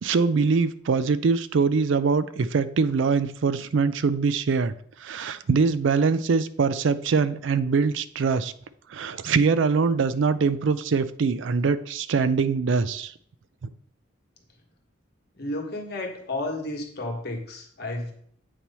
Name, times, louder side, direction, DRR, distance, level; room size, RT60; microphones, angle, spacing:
voice 1, 0.0-4.7 5.0-8.5 8.9-13.1, right 5 dB, 65° right, 14 dB, 0.4 m, -23 dB
voice 2, 15.4-18.1, left 2 dB, 50° left, 1 dB, 1.4 m, -32 dB
8.3 x 3.0 x 5.4 m, 0.62 s
head